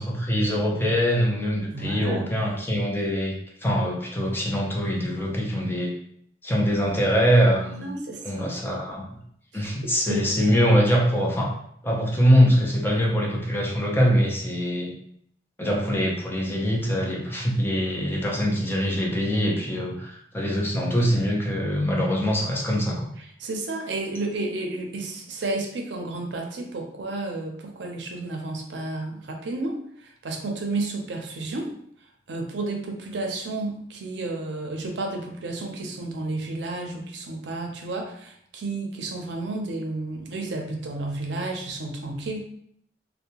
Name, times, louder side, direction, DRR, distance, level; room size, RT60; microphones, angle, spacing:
voice 1, 0.0-3.4 3.6-5.9 6.4-7.9 8.2-9.0 9.5-11.5 11.8-14.9 15.6-23.1, equal, 10° left, -2 dB, 0.5 m, -23 dB
voice 2, 1.7-2.3 7.8-8.8 9.5-10.3 23.2-31.7 32.3-42.4, right 2 dB, 75° right, 2 dB, 0.5 m, -32 dB
2.6 x 2.1 x 2.8 m, 0.68 s
head